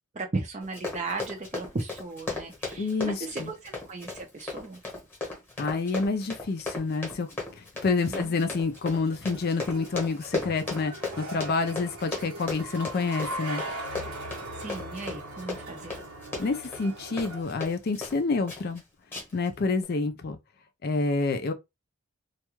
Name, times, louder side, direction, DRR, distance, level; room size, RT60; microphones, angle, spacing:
voice 1, 0.1-4.8 8.0-8.4 14.6-16.0, right 3 dB, 30° right, 0.5 m, -36 dB
Run, 0.6-18.2 18.5-18.8 19.1-19.5 19.8-19.9, left 3 dB, 10° left, 1.0 m, -36 dB
voice 2, 2.8-3.2 5.6-7.3 7.8-13.6 16.4-18.8 19.3-20.4 20.8-21.5, left 4 dB, 45° left, 0.4 m, -28 dB
sound 1, 8.2-17.4, right 1 dB, 85° right, 0.9 m, -40 dB
2.3 x 2.2 x 3.0 m
head